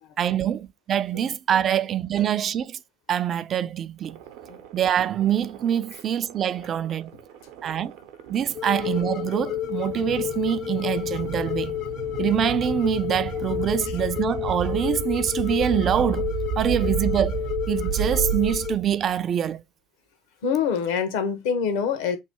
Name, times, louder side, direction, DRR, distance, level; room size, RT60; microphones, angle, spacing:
voice 1, 0.2-2.8 3.1-4.2 4.7-7.1 7.6-7.9 8.3-11.7 12.2-16.3 16.6-19.6, right 9 dB, 50° right, 0.4 m, -25 dB
sound 1, 4.0-19.1, right 8 dB, 80° right, 0.7 m, -33 dB
sound 2, 8.5-18.8, left 13 dB, 70° left, 0.6 m, -30 dB
voice 2, 20.4-22.2, left 6 dB, 85° left, 1.1 m, -26 dB
3.2 x 2.6 x 4.4 m
supercardioid pair, 80°, 0 cm